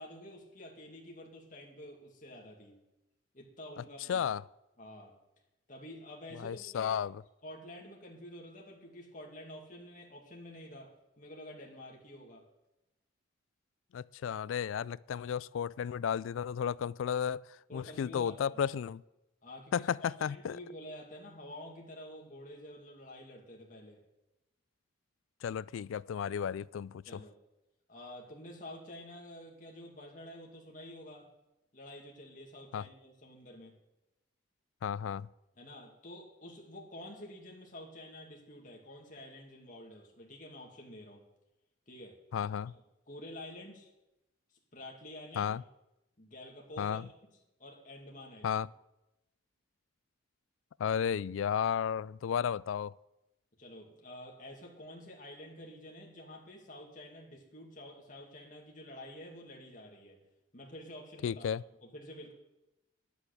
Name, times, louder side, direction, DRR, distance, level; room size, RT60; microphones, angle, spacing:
voice 1, 0.0-2.8 3.3-4.3 4.8-5.1 5.7-7.0 7.4-12.5 17.7-18.6 19.4-24.0 27.1-27.3 27.9-31.3 31.7-33.7 35.6-41.2 41.9-42.2 42.7-42.8 43.1-43.9 44.7-45.5 46.2-47.0 47.6-48.6 53.6-60.2 60.5-61.5 61.8-62.3, left 1 dB, 40° left, 2.4 m, -49 dB
voice 2, 4.1-4.4 6.3-7.2 13.9-17.5 17.7-19.0 19.7-20.6 25.4-27.2 32.7-32.8 34.8-35.3 42.3-42.7 45.4-45.6 46.8-47.1 48.4-48.7 50.8-52.9 61.2-61.6, left 8 dB, 75° left, 0.3 m, -33 dB
10.5 x 7.9 x 8.4 m
head